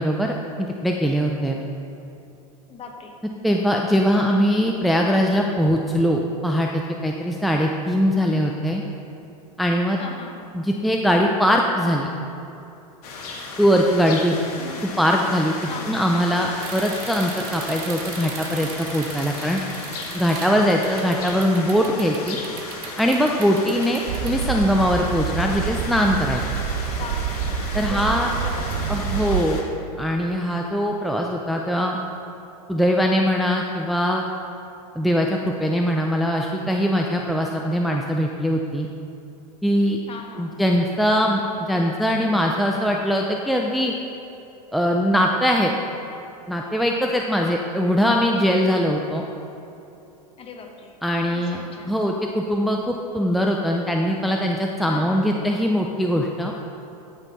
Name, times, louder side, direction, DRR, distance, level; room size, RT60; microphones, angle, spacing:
voice 1, 0.0-1.6 3.4-8.8 9.6-10.0 10.5-12.1 13.6-14.4 15.0-15.5 15.9-19.6 20.1-22.4 23.0-26.4 27.7-28.3 28.9-29.6 30.0-32.0 32.7-34.3 35.0-38.9 39.6-40.0 40.4-43.9 44.7-45.7 46.5-49.2 51.0-56.5, equal, ahead, 0 dB, 0.5 m, -21 dB
voice 2, 2.7-3.2 10.0-10.6 14.6-14.9 15.7-16.0 26.9-29.3 40.1-40.6 50.4-51.0 51.3-52.0 54.9-55.5, left 4 dB, 30° left, 3 dB, 1.3 m, -39 dB
sound 1, 13.0-29.6, left 3 dB, 75° left, 1.6 m, -35 dB
sound 2, 16.6-24.5, right 8 dB, 60° right, 1.1 m, -39 dB
sound 3, 24.1-29.4, right 7 dB, 80° right, 0.6 m, -27 dB
14.5 x 5.6 x 4.0 m, 2.9 s
hypercardioid pair, 105°, 20 cm